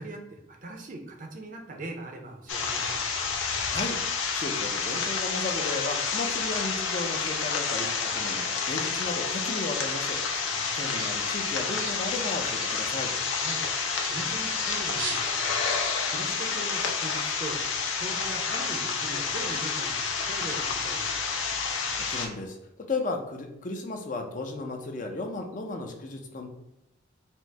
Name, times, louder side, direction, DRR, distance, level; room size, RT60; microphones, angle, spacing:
voice 1, 0.0-3.0 10.4-10.8 13.4-13.6 14.1-15.7 16.0-17.6 18.0-21.2, right 2 dB, 40° right, 2 dB, 0.6 m, -40 dB
sound 1, 2.5-22.3, left 5 dB, 80° left, 0.7 m, -29 dB
voice 2, 4.3-7.9 8.1-13.1 22.1-22.6 22.9-26.5, left 2 dB, 40° left, 3 dB, 0.5 m, -34 dB
sound 2, 9.7-15.8, right 4 dB, 75° right, 0.9 m, -42 dB
4.4 x 2.1 x 4.5 m, 0.88 s
head